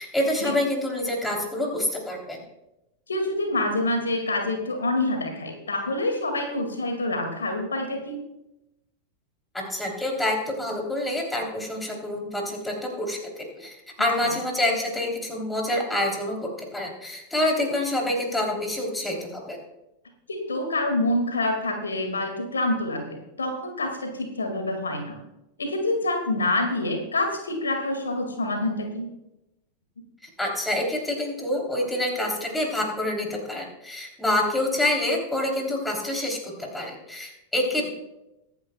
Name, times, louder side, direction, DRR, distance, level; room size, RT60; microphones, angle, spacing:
voice 1, 0.0-2.4 9.5-19.6 30.4-37.8, left 1 dB, 5° left, 1 dB, 3.2 m, -27 dB
voice 2, 3.1-8.2 14.2-14.3 20.3-25.2 25.6-29.1, left 2 dB, 75° left, 4 dB, 2.1 m, -27 dB
23.5 x 9.5 x 2.3 m, 0.89 s
figure-of-eight pair, 90°, 0 cm